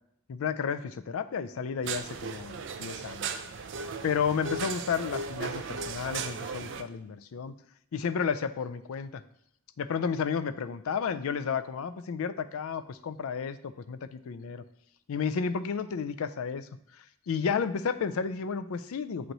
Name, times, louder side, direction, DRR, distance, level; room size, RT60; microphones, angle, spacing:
voice 1, 0.3-3.3 4.0-7.5 7.9-9.2 9.8-14.6 15.1-16.7 17.0-19.3, left 6 dB, 70° left, 12 dB, 0.4 m, -32 dB
sound 1, 1.8-6.8, right 5 dB, 55° right, 0.4 m, -36 dB
7.7 x 3.1 x 4.0 m, 0.73 s
head